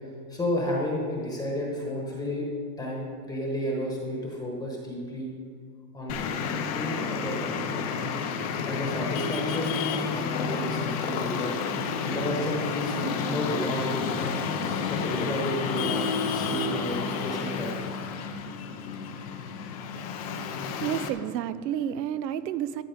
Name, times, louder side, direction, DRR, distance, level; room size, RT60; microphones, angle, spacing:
voice 1, 0.3-2.5 2.8-5.3 5.9-6.1 6.7-7.7 8.6-11.5 12.0-14.4 14.9-17.7, left 1 dB, 5° left, -2 dB, 1.1 m, -32 dB
Traffic noise roadway noise, 6.1-21.1, left 5 dB, 25° left, 0.5 m, -30 dB
voice 2, 20.3-22.8, right 10 dB, 85° right, 15 dB, 0.8 m, -31 dB
13.5 x 8.7 x 5.1 m, 2.1 s
supercardioid pair, 175°, 49 cm